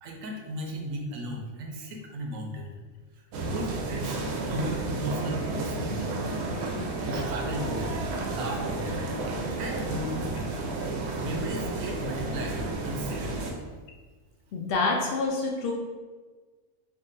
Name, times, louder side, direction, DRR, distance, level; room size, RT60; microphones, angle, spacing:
voice 1, 0.0-2.7 3.4-6.1 7.0-9.1 9.6-10.5 11.2-13.4, right 1 dB, 85° right, 1 dB, 1.0 m, -35 dB
sound 1, 3.3-13.5, right 2 dB, 65° right, 0.8 m, -32 dB
voice 2, 14.5-15.7, left 3 dB, 65° left, 0 dB, 0.6 m, -27 dB
3.6 x 2.0 x 3.9 m, 1.4 s
omnidirectional pair, 1.4 m